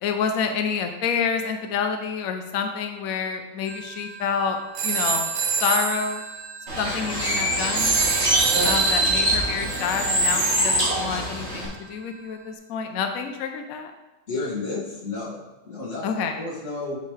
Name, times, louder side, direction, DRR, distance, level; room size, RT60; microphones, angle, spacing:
voice 1, 0.0-6.3 6.8-8.0 8.6-13.9 16.0-16.4, left 6 dB, 85° left, 5 dB, 0.7 m, -28 dB
sound 1, 3.7-11.7, right 6 dB, 75° right, 1.7 m, -30 dB
Bird, 6.7-11.7, right 1 dB, 35° right, 2.0 m, -23 dB
voice 2, 14.3-16.0 16.4-17.0, left 2 dB, 35° left, -7 dB, 2.4 m, -31 dB
8.3 x 5.4 x 3.2 m, 1.0 s
omnidirectional pair, 2.2 m